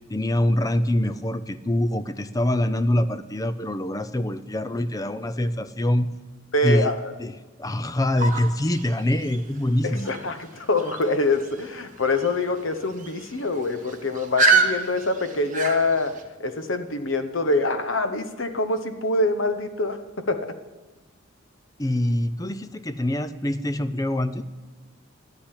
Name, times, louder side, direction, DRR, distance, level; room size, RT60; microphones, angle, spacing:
voice 1, 0.1-6.1 6.6-6.9 7.2-7.3 7.6-10.1 21.8-24.4, left 1 dB, 15° left, 13 dB, 0.5 m, -24 dB
voice 2, 6.5-7.1 9.8-20.5, left 2 dB, 65° left, 10 dB, 1.0 m, -25 dB
sound 1, 8.2-16.2, right 3 dB, 40° right, 1.2 m, -28 dB
12.0 x 8.8 x 10.0 m, 1.2 s
head